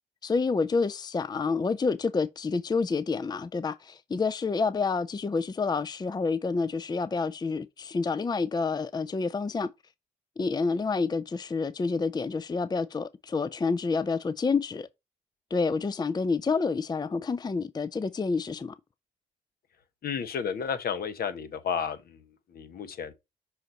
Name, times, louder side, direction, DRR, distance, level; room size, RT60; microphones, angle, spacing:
voice 1, 0.2-9.7 10.4-14.9 15.5-18.8, left 4 dB, 25° left, 0.5 m, -28 dB
voice 2, 20.0-22.0 22.5-23.1, left 7 dB, 60° left, 1.2 m, -31 dB
6.3 x 4.5 x 4.0 m
hypercardioid pair, 45°, 18 cm